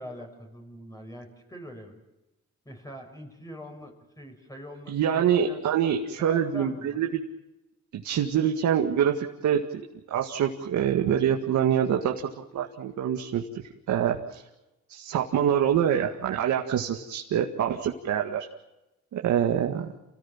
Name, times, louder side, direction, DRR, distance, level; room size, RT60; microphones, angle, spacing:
voice 1, 0.0-2.0 2.6-5.6 6.3-7.0, equal, 10° left, 2 dB, 6.4 m, -43 dB
voice 2, 4.9-7.2 7.9-12.1 12.5-14.4 14.9-18.5 19.1-19.9, right 9 dB, 75° right, 2 dB, 2.1 m, -25 dB
29.0 x 18.0 x 7.4 m, 0.96 s
cardioid pair, 95°, 29 cm